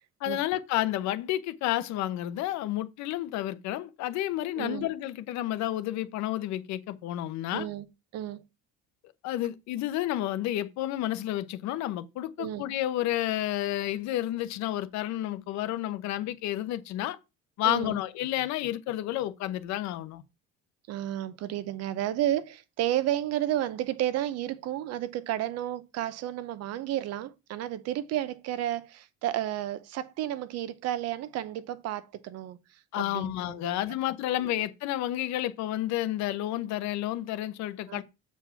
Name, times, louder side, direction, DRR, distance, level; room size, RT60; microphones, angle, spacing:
voice 1, 0.2-7.7 9.2-17.2 17.6-20.2 32.9-38.0, left 14 dB, 65° left, 0.9 m, -31 dB
voice 2, 4.6-4.9 7.5-7.9 8.1-8.4 12.4-12.6 17.6-18.0 20.9-33.3 33.6-33.8 34.3-34.4 37.9-38.0, right 12 dB, 55° right, 0.8 m, -32 dB
7.3 x 4.5 x 5.7 m
cardioid pair, 165°, 30 cm